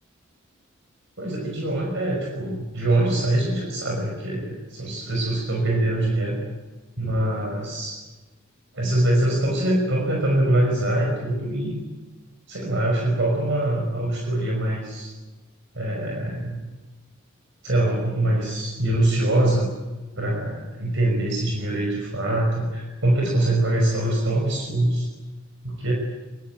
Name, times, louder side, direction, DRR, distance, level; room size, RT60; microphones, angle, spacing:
voice 1, 1.2-6.4 7.0-8.0 8.7-11.8 12.5-15.1 15.7-16.6 17.6-19.7 20.2-25.1 25.6-25.9, right 1 dB, 65° right, 0 dB, 5.6 m, -23 dB
23.5 x 23.0 x 9.0 m, 1.2 s
head